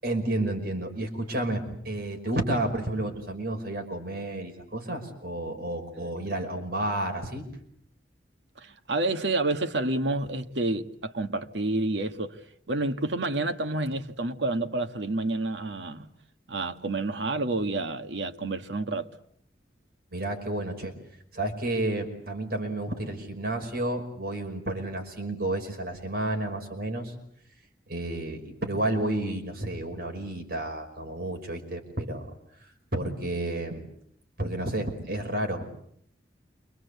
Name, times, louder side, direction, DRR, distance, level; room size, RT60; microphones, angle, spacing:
voice 1, 0.0-7.5 20.1-20.9 21.3-27.1 27.9-32.3 32.6-33.9 34.4-35.8, right 1 dB, 60° right, 5.4 m, -31 dB
voice 2, 8.6-12.4 12.7-16.1 16.5-19.1, right 2 dB, 85° right, 1.7 m, -29 dB
28.5 x 25.0 x 8.2 m
head